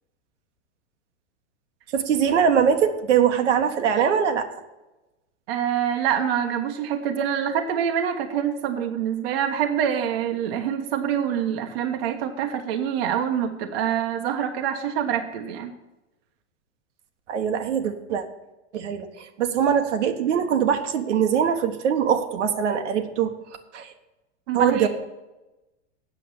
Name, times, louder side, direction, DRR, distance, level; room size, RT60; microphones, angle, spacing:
voice 1, 1.9-4.5 17.3-18.2 18.7-23.3 23.7-23.9 24.5-24.9, right 8 dB, 80° right, 5 dB, 1.3 m, -22 dB
voice 2, 5.5-15.7 24.5-24.9, right 9 dB, 60° right, 5 dB, 1.1 m, -25 dB
8.4 x 6.9 x 8.6 m, 1.0 s
supercardioid pair, 135°, 35 cm